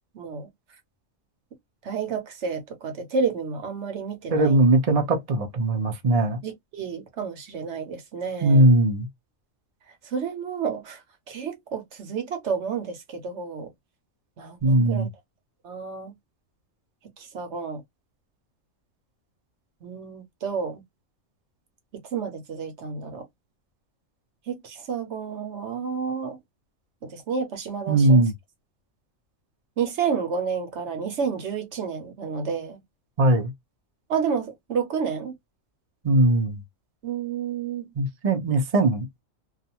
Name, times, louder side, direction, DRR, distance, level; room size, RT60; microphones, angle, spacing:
voice 1, 0.1-0.5 1.8-4.6 6.4-8.7 10.1-11.0 11.3-13.7 14.4-15.1 15.6-16.1 17.2-17.8 19.8-20.8 22.1-23.2 24.5-26.4 27.0-28.2 29.8-32.8 34.1-35.3 37.0-37.9, right 6 dB, 60° right, 1.0 m, -30 dB
voice 2, 4.3-6.4 8.4-9.1 14.6-15.1 27.9-28.3 33.2-33.5 36.0-36.6 38.0-39.1, right 1 dB, 40° right, 0.5 m, -20 dB
2.5 x 2.3 x 2.8 m
omnidirectional pair, 1.4 m